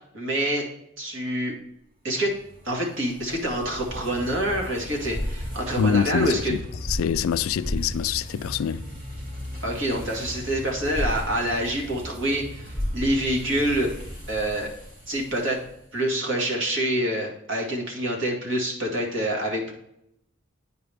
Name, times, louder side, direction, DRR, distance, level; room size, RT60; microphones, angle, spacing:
voice 1, 0.1-0.6 1.0-1.5 2.0-2.3 2.6-6.5 9.6-13.9 14.3-14.7 15.1-15.6 15.9-19.7, right 1 dB, 60° right, 1.8 m, -26 dB
sound 1, 2.4-15.8, equal, 40° right, 2.5 m, -35 dB
voice 2, 5.8-8.9, left 7 dB, 80° left, 0.3 m, -25 dB
9.4 x 4.6 x 3.4 m
head